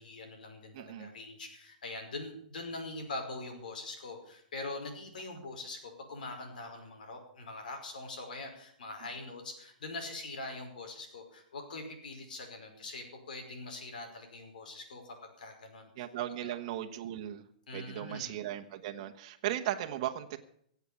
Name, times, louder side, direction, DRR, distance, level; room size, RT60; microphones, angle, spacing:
voice 1, 0.0-16.1 16.4-16.6 17.7-18.4, left 2 dB, 80° left, 4 dB, 5.3 m, -43 dB
voice 2, 0.7-1.1 16.0-17.4 17.7-20.4, right 12 dB, 45° right, 5 dB, 1.3 m, -37 dB
16.5 x 8.2 x 8.4 m, 0.67 s
hypercardioid pair, 150°, 4 cm